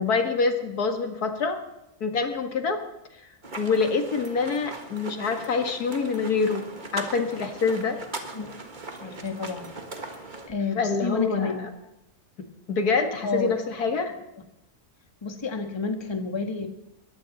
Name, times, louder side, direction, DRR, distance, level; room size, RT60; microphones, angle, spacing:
voice 1, 0.0-1.6 2.0-2.8 3.6-6.7 6.9-8.0 10.8-11.7 12.7-14.1, left 4 dB, 75° left, 6 dB, 2.2 m, -26 dB
sound 1, 3.4-10.5, right 2 dB, 30° right, 1.7 m, -39 dB
voice 2, 9.0-9.7 10.5-11.6 13.2-13.6 15.2-16.7, left 4 dB, 20° left, 5 dB, 1.4 m, -30 dB
21.5 x 15.5 x 4.1 m, 0.88 s
omnidirectional pair, 1.6 m